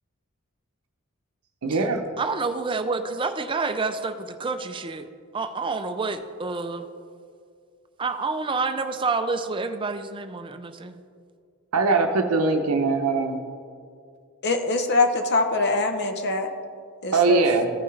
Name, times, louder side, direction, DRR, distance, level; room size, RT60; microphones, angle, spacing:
voice 1, 1.6-2.0 11.7-13.4 17.1-17.7, right 3 dB, 80° right, 4 dB, 0.7 m, -21 dB
voice 2, 2.2-5.1 5.3-6.9 8.0-11.0, right 4 dB, 20° right, 9 dB, 0.4 m, -28 dB
voice 3, 14.4-16.5 17.0-17.4, left 2 dB, 50° left, 6 dB, 0.8 m, -23 dB
15.0 x 5.7 x 3.2 m, 2.2 s
head